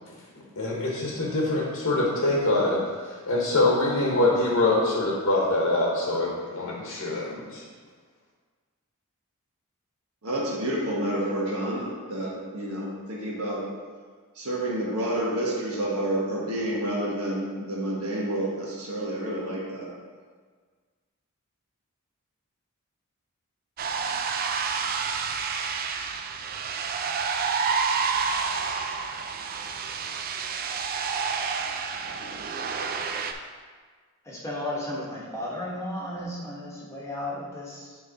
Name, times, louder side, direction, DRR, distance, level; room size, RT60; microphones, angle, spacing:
voice 1, 0.6-7.6, left 2 dB, 70° left, -3 dB, 1.1 m, -24 dB
voice 2, 10.2-13.6 14.3-19.9, right 1 dB, 70° right, -5 dB, 1.5 m, -29 dB
sound 1, 23.8-33.3, right 5 dB, 40° right, 0.4 m, -29 dB
voice 3, 34.2-38.0, left 1 dB, 15° left, -5 dB, 1.1 m, -34 dB
9.6 x 3.3 x 4.0 m, 1.5 s
head